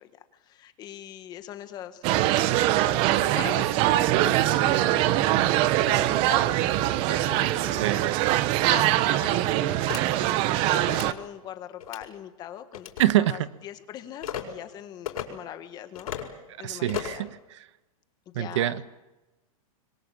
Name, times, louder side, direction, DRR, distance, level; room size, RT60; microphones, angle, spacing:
voice 1, 0.0-2.2 2.6-3.7 4.2-5.2 5.7-8.1 8.4-12.9 13.2-17.3 18.3-18.8, left 11 dB, 20° left, 10 dB, 1.5 m, -41 dB
sound 1, 2.0-11.1, right 14 dB, 30° right, 0.8 m, -23 dB
voice 2, 7.7-8.0 13.0-13.5 16.6-17.7 18.3-18.9, right 13 dB, 50° right, 14 dB, 1.2 m, -25 dB
sound 2, 9.9-10.0 10.8-11.1 11.8-12.1 12.7-13.0 14.2-14.4 15.1-15.3 16.0-16.3 16.9-17.2, left 10 dB, 80° left, 5.1 m, -34 dB
26.5 x 22.5 x 7.6 m, 1.1 s
supercardioid pair, 165°, 19 cm